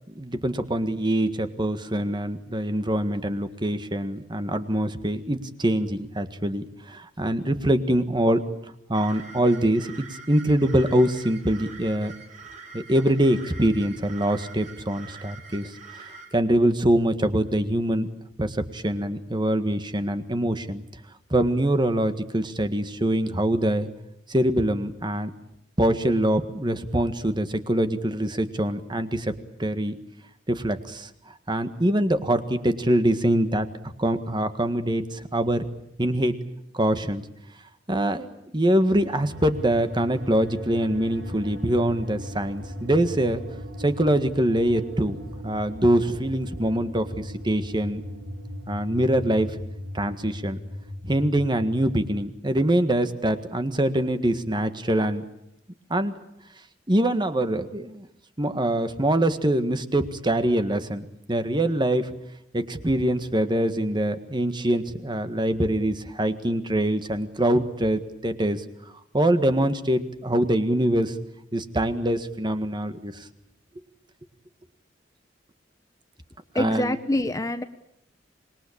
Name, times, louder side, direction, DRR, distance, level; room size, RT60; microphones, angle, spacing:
voice 1, 0.1-8.4 8.9-9.9 10.3-12.1 12.7-15.7 16.3-18.1 18.4-20.8 21.3-23.9 24.3-25.3 25.8-29.3 29.6-30.0 30.5-31.1 31.5-33.7 34.0-35.6 36.0-36.4 36.7-37.2 37.9-43.4 43.8-48.0 48.7-49.5 49.9-50.6 51.0-55.2 55.9-56.1 56.9-58.1 58.4-62.1 62.5-68.6 69.1-71.1 71.5-73.1 76.6-76.9, right 1 dB, 25° right, 9 dB, 1.7 m, -24 dB
sound 1, 8.9-16.3, right 4 dB, 40° right, 6.6 m, -45 dB
sound 2, 38.9-52.2, left 1 dB, 65° right, 3.5 m, -38 dB
voice 2, 76.5-77.6, left 1 dB, 20° left, 10 dB, 1.0 m, -25 dB
26.0 x 21.5 x 8.7 m, 0.78 s
head